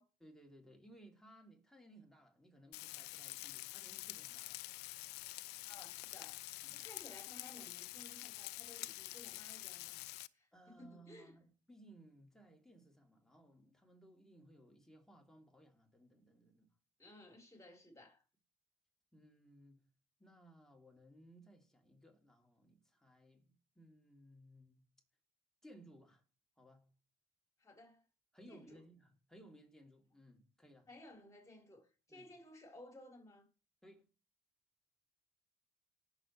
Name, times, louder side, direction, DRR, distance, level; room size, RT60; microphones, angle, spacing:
voice 1, 0.2-4.6 6.6-6.9 10.5-16.7 19.1-19.8 20.2-24.9 25.6-26.2 26.6-26.9 28.3-30.9 32.1-32.3 33.8-34.1, right 1 dB, 5° left, 3.1 m, -61 dB
Frying (food), 2.7-10.3, left 19 dB, 90° left, 0.4 m, -47 dB
voice 2, 5.6-6.4 6.7-11.4 17.0-18.2 27.6-28.0 28.5-28.8 30.9-33.5, left 1 dB, 20° left, 4.3 m, -58 dB
19.0 x 7.1 x 3.3 m
cardioid pair, 90°, 17 cm